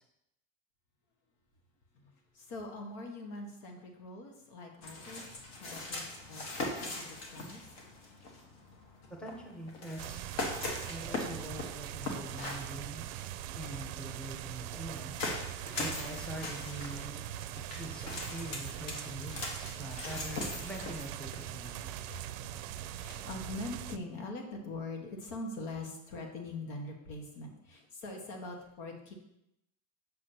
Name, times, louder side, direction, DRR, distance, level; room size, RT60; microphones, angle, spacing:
voice 1, 1.9-5.3 5.6-7.7 8.8-9.0 17.7-17.8 18.1-18.5 22.1-22.2 22.8-29.1, left 2 dB, 80° left, 2 dB, 1.6 m, -43 dB
sound 1, 4.8-23.5, left 2 dB, 55° left, 1.4 m, -41 dB
voice 2, 9.2-10.4 10.9-13.0 13.6-15.2 15.8-17.2 17.7-22.1, equal, 5° left, 1 dB, 0.8 m, -44 dB
sound 2, 10.0-24.0, right 12 dB, 85° right, 0.5 m, -42 dB
7.2 x 6.5 x 2.9 m, 0.83 s
cardioid pair, 155°, 31 cm